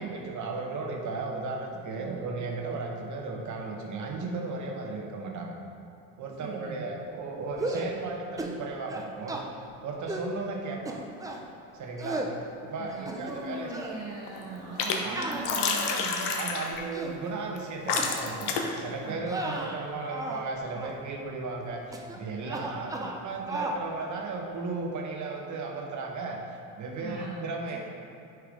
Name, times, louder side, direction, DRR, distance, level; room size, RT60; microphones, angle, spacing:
voice 1, 0.0-5.5 6.2-9.4 9.8-11.0 11.7-12.3 12.6-13.7 15.0-15.2 16.4-26.4 26.8-27.8, right 3 dB, 45° right, 1 dB, 1.0 m, -35 dB
voice 2, 6.4-6.9 12.8-17.1 19.0-19.6 27.0-27.8, right 4 dB, 60° right, -6 dB, 1.1 m, -40 dB
sound 1, 7.5-7.9 8.4-8.6 8.9-9.5 10.1-10.3 10.9-11.4 12.0-12.3 12.9-13.4 13.7-14.0 15.1-16.2 16.7-17.2 17.9-18.1 18.5-18.7 19.2-20.5 20.7-21.0 21.9-22.2 22.4-23.2 23.5-23.8, right 1 dB, 10° right, 0.5 m, -35 dB
sound 2, 13.3-13.8 14.1-15.0 15.2-16.8 17.6-17.7 17.9-18.8, left 5 dB, 70° left, 0.9 m, -29 dB
5.0 x 4.6 x 4.9 m, 2.8 s
supercardioid pair, 95°, 42 cm